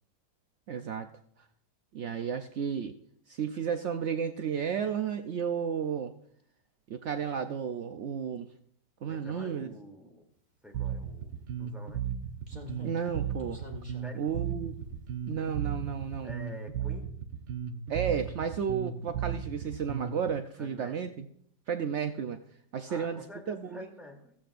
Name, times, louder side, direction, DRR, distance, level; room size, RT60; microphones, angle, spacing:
voice 1, 0.7-1.1 1.9-2.9 3.3-6.1 6.9-8.5 9.0-9.7 12.8-13.6 14.2-14.8 15.3-16.3 17.9-21.2 21.7-22.4 22.7-23.9, right 7 dB, 65° right, 7 dB, 0.7 m, -33 dB
voice 2, 9.1-10.3 10.6-12.0 14.0-14.2 16.2-17.1 20.6-20.9 22.9-24.3, left 1 dB, ahead, 1 dB, 2.7 m, -47 dB
Bass guitar, 10.7-20.3, right 8 dB, 80° right, 1.6 m, -35 dB
Slam, 11.1-11.2 12.5-16.0 16.3-16.4, left 1 dB, 25° right, 1.8 m, -48 dB
16.0 x 15.0 x 2.5 m, 0.65 s
omnidirectional pair, 1.9 m